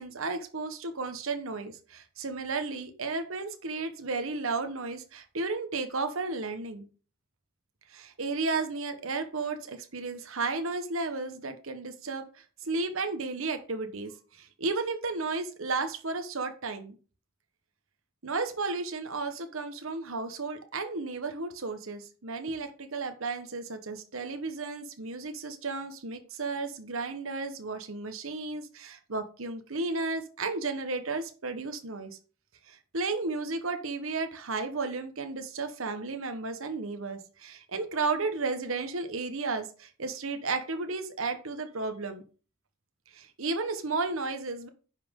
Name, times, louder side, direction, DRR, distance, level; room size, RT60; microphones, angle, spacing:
voice 1, 0.0-6.9 7.9-17.0 18.2-32.2 32.7-42.2 43.1-44.7, right 3 dB, 70° right, 7 dB, 1.1 m, -33 dB
10.5 x 5.8 x 3.7 m, 0.36 s
head